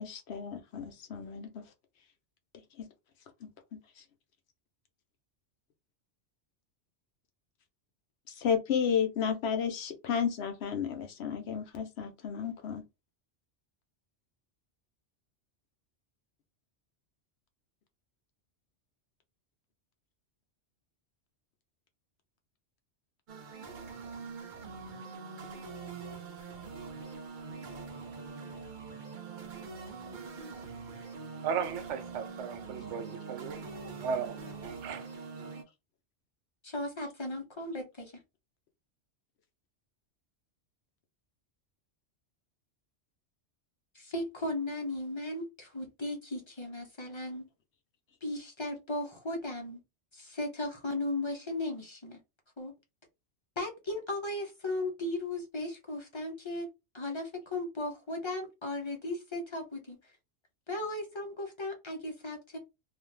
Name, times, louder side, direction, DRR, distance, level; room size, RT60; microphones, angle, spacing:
voice 1, 0.0-1.6 2.8-2.9 3.4-3.5 8.4-12.8, left 7 dB, 70° left, 0.9 m, -32 dB
sound 1, 23.3-35.6, right 4 dB, 50° right, 0.7 m, -44 dB
voice 2, 31.4-35.1, right 6 dB, 85° right, 0.9 m, -36 dB
voice 3, 36.6-38.2 43.9-47.4 48.2-49.8 50.1-52.2 52.6-52.7 53.6-56.7 56.9-60.1 60.7-62.6, left 2 dB, 30° left, 0.7 m, -36 dB
2.5 x 2.4 x 3.1 m
omnidirectional pair, 1.2 m